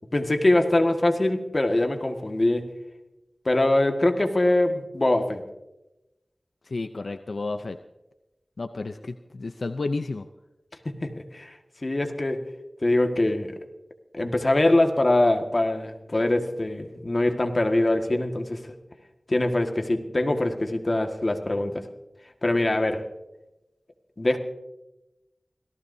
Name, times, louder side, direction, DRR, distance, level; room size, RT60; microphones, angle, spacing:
voice 1, 0.1-2.7 3.5-5.4 11.0-11.6 11.8-12.5 12.8-13.5 14.1-18.8 19.3-21.9 22.4-23.1 24.2-24.4, left 1 dB, 45° left, 4 dB, 1.8 m, -23 dB
voice 2, 6.7-7.8 8.6-10.3, left 3 dB, 80° left, 8 dB, 0.6 m, -31 dB
26.5 x 18.0 x 2.8 m, 0.98 s
wide cardioid pair, 55°, 0 cm